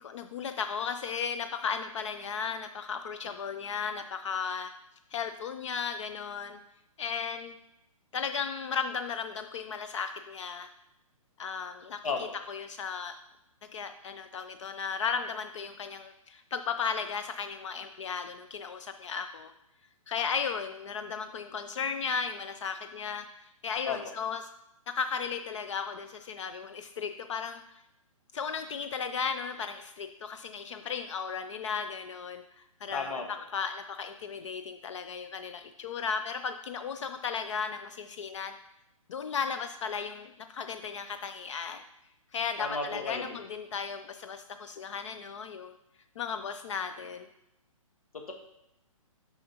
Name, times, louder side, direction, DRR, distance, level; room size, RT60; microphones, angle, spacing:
voice 1, 0.0-4.7 5.1-6.6 7.0-7.6 8.1-10.7 11.4-13.2 13.7-19.5 20.1-24.4 24.9-27.6 28.3-38.5 39.1-41.8 42.3-45.8 46.2-47.3, left 6 dB, 60° left, 8 dB, 0.5 m, -35 dB
voice 2, 32.9-33.2 42.6-43.4 48.1-48.3, left 4 dB, 80° left, 2 dB, 1.6 m, -33 dB
8.9 x 5.6 x 2.9 m, 0.83 s
hypercardioid pair, 140°, 18 cm